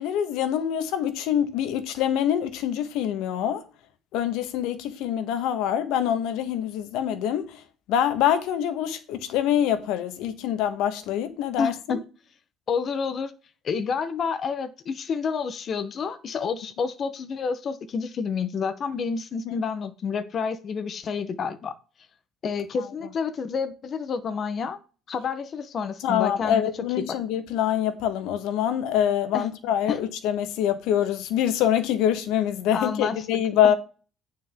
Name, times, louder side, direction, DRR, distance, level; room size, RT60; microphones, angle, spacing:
voice 1, 0.0-3.6 4.1-7.6 7.9-12.0 19.4-19.6 26.0-33.7, left 10 dB, 85° left, 1.2 m, -25 dB
voice 2, 11.6-12.0 12.7-13.3 13.6-21.7 22.4-24.8 25.1-26.6 27.0-27.1 29.3-29.4 29.9-30.0 32.7-33.2, left 5 dB, 35° left, 0.8 m, -29 dB
9.3 x 6.5 x 3.6 m
cardioid pair, 175°, 0 cm